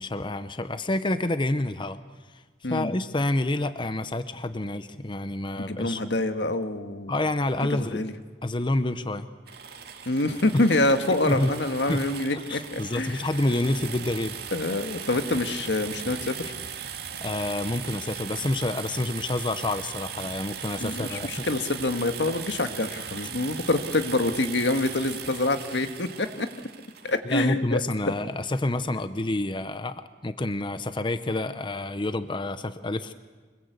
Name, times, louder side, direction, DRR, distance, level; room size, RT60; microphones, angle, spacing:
voice 1, 0.0-2.0 2.3-6.0 7.1-8.0 8.4-9.3 11.3-11.5 11.9-12.1 12.3-14.4 17.2-21.5 27.2-29.9 30.2-33.1, left 2 dB, 25° left, 11 dB, 0.8 m, -28 dB
voice 2, 5.6-7.1 7.7-8.1 10.1-13.2 14.5-16.5 20.8-26.5 27.0-27.8 28.1-28.2, left 2 dB, 80° left, 8 dB, 1.7 m, -26 dB
sound 1, 9.5-27.2, right 7 dB, 60° right, 2.1 m, -38 dB
25.0 x 22.5 x 8.2 m, 1.4 s
head